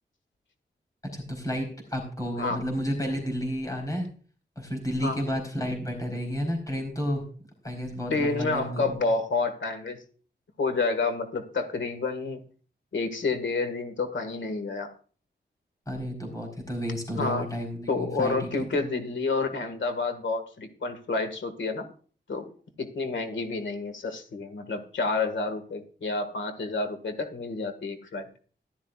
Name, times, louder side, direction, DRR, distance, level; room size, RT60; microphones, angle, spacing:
voice 1, 1.1-4.1 4.6-7.2 7.6-9.0 15.9-18.5, equal, 20° left, 1 dB, 4.1 m, -31 dB
voice 2, 8.1-10.0 10.6-12.4 12.9-14.9 17.2-17.5 17.9-21.9 22.3-22.5 22.8-28.3, left 3 dB, 90° left, 7 dB, 1.9 m, -29 dB
15.0 x 12.0 x 2.4 m, 0.41 s
wide cardioid pair, 130°, 19 cm